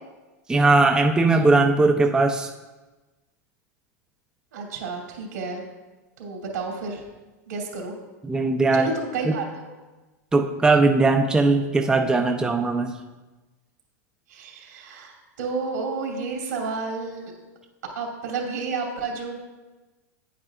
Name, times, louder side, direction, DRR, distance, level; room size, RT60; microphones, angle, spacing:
voice 1, 0.5-2.5 8.3-8.9 9.3-9.4 10.3-12.9, right 3 dB, 10° right, 3 dB, 0.5 m, -19 dB
voice 2, 4.5-5.6 6.2-7.0 7.5-7.9 8.7-9.7 14.3-17.2 17.9-19.3, right 4 dB, 80° right, -1 dB, 2.8 m, -31 dB
9.3 x 8.7 x 2.5 m, 1.2 s
hypercardioid pair, 115°, 9 cm